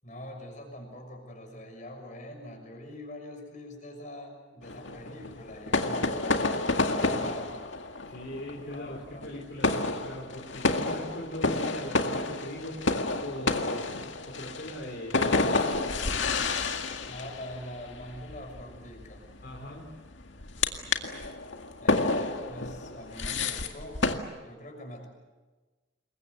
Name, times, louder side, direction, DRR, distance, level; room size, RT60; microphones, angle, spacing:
voice 1, 0.0-6.1 6.7-7.6 8.6-9.5 17.0-19.3 20.5-21.0 21.8-24.1 24.4-25.1, left 1 dB, 40° left, 3 dB, 6.3 m, -44 dB
sound 1, 4.6-24.1, left 3 dB, 80° left, 2.0 m, -30 dB
voice 2, 8.1-12.9 13.2-14.0 14.3-16.1 19.4-19.9, left 1 dB, 55° left, -1 dB, 3.8 m, -40 dB
27.5 x 22.5 x 8.1 m, 1.3 s
head